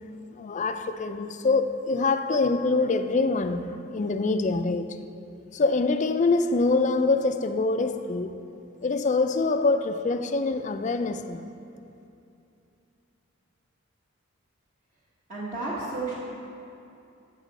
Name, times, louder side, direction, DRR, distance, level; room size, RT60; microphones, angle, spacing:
voice 1, 0.3-5.0 5.5-8.4 8.8-11.5, left 3 dB, 35° left, 0.4 m, -25 dB
voice 2, 15.3-16.1, right 3 dB, 40° right, 1.4 m, -31 dB
12.5 x 7.1 x 4.1 m
head